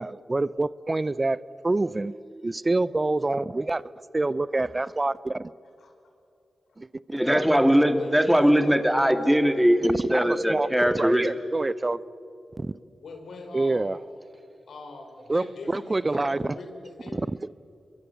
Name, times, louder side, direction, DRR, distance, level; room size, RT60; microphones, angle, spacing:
voice 1, 0.0-3.8 4.1-5.5 6.8-7.4 10.1-10.7 10.9-12.0 12.5-12.8 13.5-14.0 15.3-16.6 17.1-17.5, right 2 dB, 35° right, 18 dB, 0.6 m, -27 dB
voice 2, 7.1-11.3, equal, 5° right, 7 dB, 2.5 m, -21 dB
voice 3, 7.9-8.7 13.0-14.0 14.7-17.2, left 3 dB, 85° left, 4 dB, 4.5 m, -42 dB
27.0 x 23.0 x 8.4 m, 2.6 s
cardioid pair, 45°, 0 cm